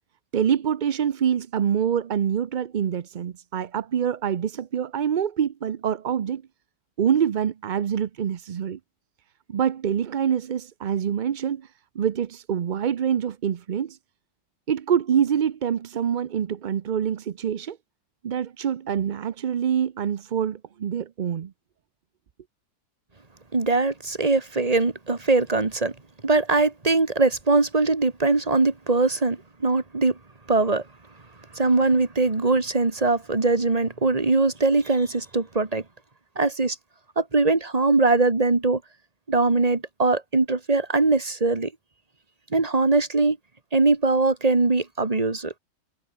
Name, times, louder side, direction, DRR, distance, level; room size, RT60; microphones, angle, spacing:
voice 1, 0.3-6.4 7.0-8.8 9.5-11.7 11.9-14.0 14.7-17.8 18.2-21.5, right 8 dB, 55° right, 0.5 m, -25 dB
voice 2, 23.5-25.9 26.2-30.2 30.5-30.8 31.5-35.8 36.4-36.8 37.2-38.8 39.3-41.7 42.5-43.4 43.7-45.5, right 3 dB, 25° right, 1.9 m, -21 dB
omnidirectional pair, 1.5 m